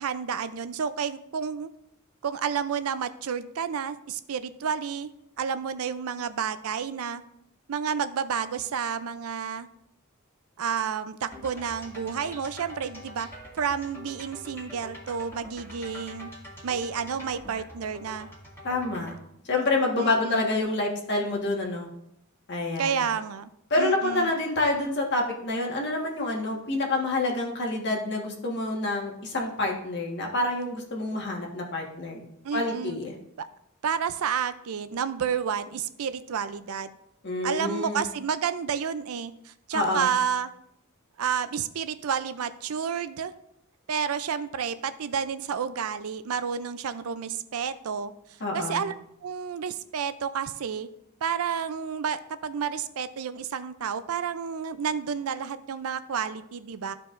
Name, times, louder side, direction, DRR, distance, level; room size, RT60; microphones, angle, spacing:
voice 1, 0.0-1.7 2.2-5.1 5.4-7.2 7.7-9.7 10.6-13.3 13.5-16.3 16.6-18.3 20.0-20.5 22.8-23.5 23.8-24.3 32.4-33.0 33.4-33.5 33.8-36.9 37.4-40.5 41.2-43.3 43.9-48.1 48.5-48.9 49.2-50.9 51.2-56.9, right 7 dB, 80° right, 13 dB, 0.5 m, -30 dB
sound 1, 11.3-19.2, equal, 10° left, 2.0 m, -45 dB
voice 2, 18.6-19.1 19.4-21.9 22.5-23.0 23.7-32.2 32.5-33.1 37.2-38.1 39.7-40.1 48.4-48.9, left 2 dB, 55° left, 0 dB, 1.5 m, -27 dB
13.5 x 4.7 x 2.5 m, 0.78 s
head